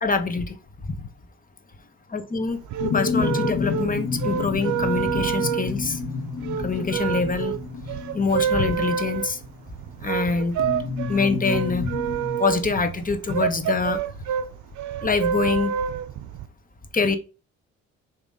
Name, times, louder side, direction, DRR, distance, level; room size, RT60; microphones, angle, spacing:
voice 1, 0.0-0.6 1.0-1.1 2.1-2.6 2.9-6.0 6.6-7.6 8.1-9.4 10.0-10.6 11.1-11.9 12.4-14.0 15.0-15.7 16.9-17.2, left 4 dB, 30° left, 1.2 m, -24 dB
sound 1, 2.5-16.5, right 9 dB, 70° right, 0.6 m, -28 dB
sound 2, 2.8-9.6 10.6-12.4, left 5 dB, 60° left, 1.2 m, -30 dB
6.9 x 3.0 x 5.4 m
cardioid pair, 90°, 30 cm